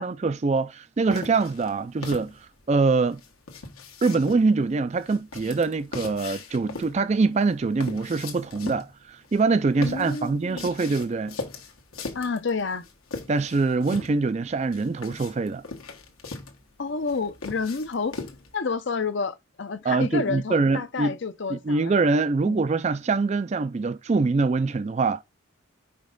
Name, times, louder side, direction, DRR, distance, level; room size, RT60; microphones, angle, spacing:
voice 1, 0.0-3.2 4.0-11.4 13.3-15.6 19.9-21.2 21.5-25.2, right 3 dB, 30° right, 0.3 m, -24 dB
sound 1, 1.1-18.6, left 3 dB, 85° left, 1.5 m, -40 dB
voice 2, 9.8-10.7 12.1-12.9 16.8-18.2 18.5-22.0 22.5-22.6, left 4 dB, 55° left, 0.6 m, -29 dB
5.3 x 5.1 x 3.7 m
head